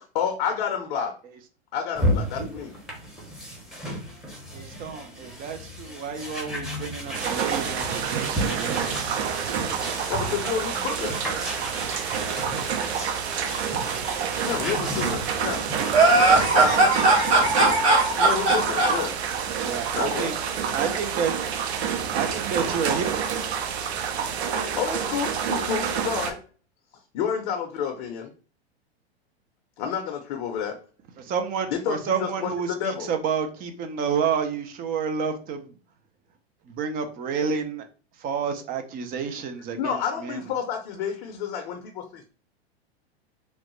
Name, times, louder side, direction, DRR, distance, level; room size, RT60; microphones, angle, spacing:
voice 1, 0.1-1.1 1.7-2.7 10.1-11.2 14.4-15.7 18.2-19.1 19.9-20.3 24.7-26.4 27.1-28.3 29.8-30.8 31.7-33.1 39.8-42.2, left 7 dB, 50° left, 4 dB, 0.6 m, -29 dB
sound 1, 2.0-17.9, equal, ahead, 0.8 m, -34 dB
voice 2, 4.5-9.0 19.6-20.3 20.7-21.3 22.1-23.4 31.3-35.7 36.7-37.9 38.2-39.9 40.2-40.4, right 6 dB, 30° right, 7 dB, 0.4 m, -29 dB
sound 2, 7.1-26.3, right 7 dB, 75° right, 0.7 m, -28 dB
voice 3, 15.9-19.0, right 2 dB, 55° right, -3 dB, 1.4 m, -19 dB
3.0 x 2.1 x 3.0 m, 0.37 s
hypercardioid pair, 105°, 32 cm